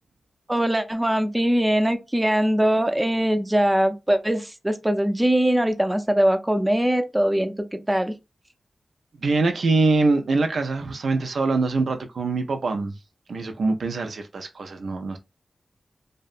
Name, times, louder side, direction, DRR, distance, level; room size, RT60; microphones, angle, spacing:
voice 1, 0.5-8.1, right 1 dB, 15° right, 0.5 m, -22 dB
voice 2, 9.2-12.9 13.3-15.2, right 3 dB, 80° right, 0.4 m, -23 dB
2.6 x 2.1 x 2.4 m
cardioid pair, 50°, 0 cm